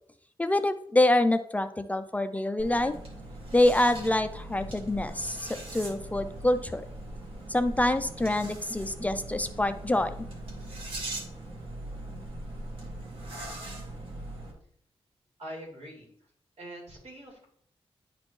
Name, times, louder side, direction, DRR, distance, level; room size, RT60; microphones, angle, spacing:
voice 1, 0.4-2.9 3.5-6.8 7.5-10.1, left 1 dB, 15° left, 10 dB, 0.3 m, -26 dB
sound 1, 2.6-14.5, right 1 dB, 65° right, 1.7 m, -40 dB
voice 2, 15.4-16.1 16.6-17.4, equal, 85° right, -3 dB, 3.2 m, -43 dB
10.5 x 4.3 x 3.1 m, 0.64 s
wide cardioid pair, 180°, 10 cm